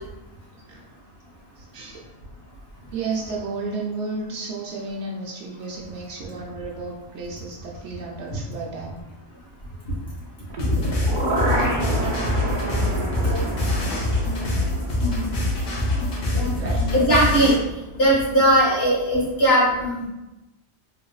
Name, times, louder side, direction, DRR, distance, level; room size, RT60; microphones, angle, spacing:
voice 1, 0.6-0.9 1.6-2.0 2.9-9.0 15.6-15.8 16.4-17.0, right 3 dB, 75° right, -2 dB, 0.9 m, -33 dB
sound 1, 10.5-16.5 16.8-16.9, right 1 dB, 50° right, 0.8 m, -29 dB
sound 2, 10.6-17.5, left 1 dB, 85° left, 1.2 m, -24 dB
voice 2, 16.9-17.6 17.9-20.1, equal, 60° left, -6 dB, 1.8 m, -19 dB
4.0 x 3.4 x 2.3 m, 0.98 s
omnidirectional pair, 1.2 m